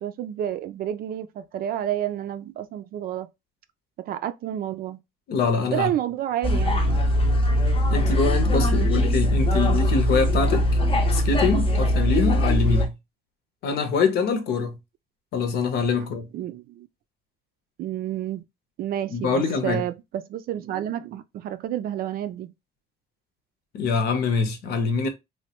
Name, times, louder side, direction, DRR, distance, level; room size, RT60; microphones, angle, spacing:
voice 1, 0.0-3.3 4.0-5.0 5.7-7.0 8.7-8.9 16.3-16.9 17.8-18.4 18.8-22.5, right 11 dB, 60° right, 0.4 m, -30 dB
voice 2, 5.3-5.9 7.9-10.7 11.1-12.9 13.6-14.8 15.3-16.3 19.1-19.8 23.7-25.1, left 4 dB, 70° left, 0.8 m, -24 dB
sound 1, 6.4-12.9, equal, 30° left, 0.6 m, -21 dB
3.2 x 2.2 x 2.9 m
cardioid pair, 110°, 17 cm